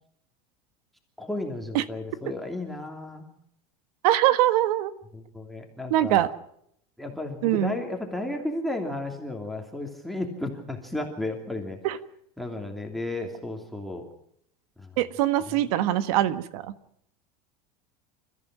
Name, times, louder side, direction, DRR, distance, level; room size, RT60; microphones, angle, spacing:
voice 1, 1.2-3.3 5.1-6.3 7.0-11.8 12.4-14.0 14.8-14.9 15.5-15.6, left 2 dB, ahead, 4 dB, 2.8 m, -33 dB
voice 2, 4.0-4.9 5.9-6.3 7.4-7.8 11.8-12.0 15.0-16.7, right 13 dB, 75° right, 13 dB, 1.5 m, -23 dB
29.5 x 14.5 x 6.1 m, 0.70 s
supercardioid pair, 140°, 20 cm